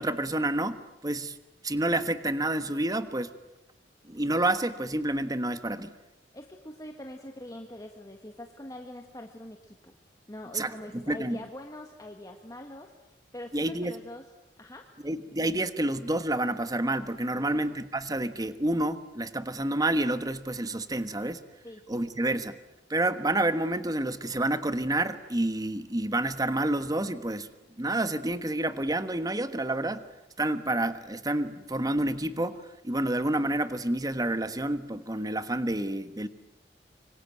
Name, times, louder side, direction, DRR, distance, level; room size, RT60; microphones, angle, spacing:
voice 1, 0.0-1.4 1.6-3.3 4.0-5.9 10.5-11.4 13.5-14.0 15.0-21.4 21.9-22.6 22.9-27.5 27.8-30.1 30.4-36.3, right 1 dB, 20° right, 12 dB, 1.3 m, -29 dB
voice 2, 6.3-9.9 10.3-14.2 14.6-14.8 17.3-17.7 21.6-21.8, left 1 dB, 20° left, 4 dB, 1.7 m, -43 dB
25.5 x 25.0 x 9.0 m, 0.96 s
head